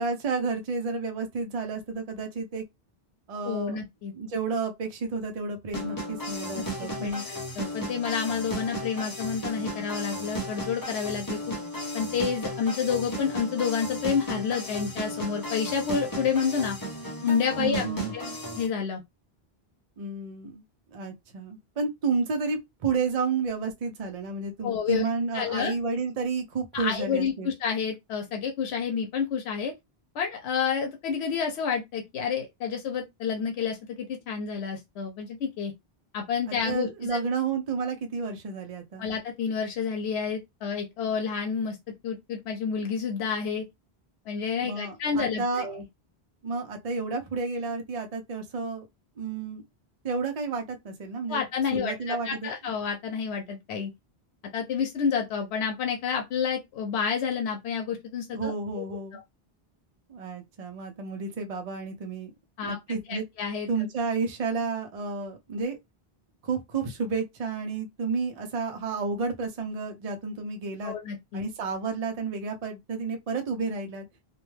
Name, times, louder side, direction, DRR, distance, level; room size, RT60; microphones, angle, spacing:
voice 1, 0.0-2.6 3.3-3.8 4.1-7.2 17.6-18.1 20.0-20.6 20.9-27.5 36.5-39.1 44.6-45.7 46.4-48.9 49.2-49.6 50.0-51.4 51.7-52.5 58.3-59.2 60.1-62.3 62.6-63.2 63.7-65.8 66.4-70.9 71.3-74.0, right 4 dB, 45° right, 0.5 m, -31 dB
voice 2, 3.4-4.1 6.8-11.5 11.9-16.8 17.2-17.9 18.1-18.3 18.6-19.0 24.6-25.1 25.3-25.7 26.7-29.7 30.1-35.7 36.1-37.2 39.0-41.8 42.0-43.7 44.3-45.8 51.3-53.9 54.5-58.8 59.1-59.2 62.6-63.7 70.8-71.4, left 6 dB, 90° left, 0.8 m, -29 dB
sound 1, 5.7-18.7, equal, 25° left, 0.7 m, -35 dB
2.3 x 2.2 x 3.1 m
omnidirectional pair, 1.1 m